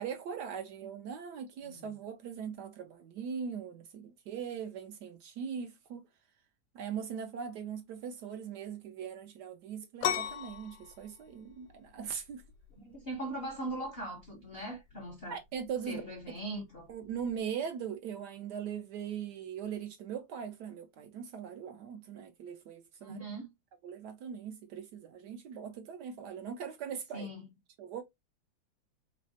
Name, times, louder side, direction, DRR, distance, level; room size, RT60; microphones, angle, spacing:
voice 1, 0.0-6.1 6.7-12.4 15.3-16.0 16.9-23.2 23.8-27.3 27.8-28.0, right 7 dB, 75° right, 1.0 m, -40 dB
sound 1, 10.0-17.4, left 10 dB, 85° left, 1.3 m, -40 dB
voice 2, 12.8-15.4 15.9-16.9 23.0-23.5 27.1-27.5, right 1 dB, 50° left, 0.7 m, -40 dB
3.3 x 3.1 x 2.6 m
omnidirectional pair, 2.1 m